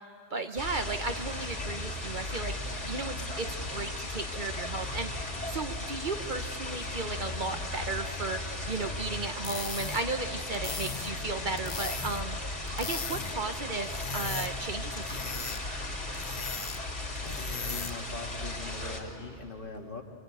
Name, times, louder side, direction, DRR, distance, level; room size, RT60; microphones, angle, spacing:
voice 1, 0.3-2.5 2.9-3.5 3.7-5.1 5.5-12.4 12.8-15.6, right 3 dB, 45° right, 7 dB, 1.0 m, -35 dB
sound 1, 0.6-19.0, left 2 dB, 80° left, 3.5 m, -36 dB
sound 2, 9.2-18.1, left 5 dB, 35° left, 0.7 m, -40 dB
voice 2, 17.1-20.0, left 3 dB, 50° left, 3 dB, 2.0 m, -42 dB
25.5 x 23.0 x 9.2 m, 2.7 s
omnidirectional pair, 1.2 m